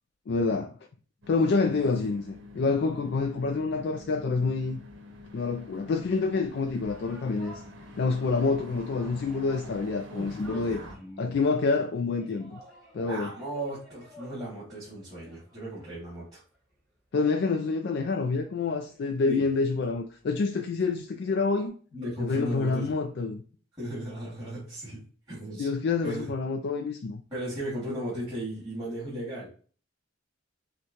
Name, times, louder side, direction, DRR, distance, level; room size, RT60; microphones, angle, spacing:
voice 1, 0.3-0.7 1.3-4.8 5.3-7.6 8.0-10.8 11.2-12.6 12.9-13.3 17.1-21.7 22.2-23.4 25.6-27.2, left 4 dB, 55° left, 0.3 m, -27 dB
sound 1, 1.2-11.0, left 2 dB, 75° right, 1.0 m, -47 dB
sound 2, 6.6-11.3 12.1-14.5 14.9-16.8 17.1-17.2 17.5-21.7, right 1 dB, ahead, 1.4 m, -54 dB
voice 2, 10.1-11.4 13.0-16.4 19.3-19.4 21.9-22.9 23.8-25.0 25.3-25.7 26.0-26.3 27.3-29.5, right 1 dB, 15° right, 2.1 m, -36 dB
6.2 x 2.2 x 2.9 m
head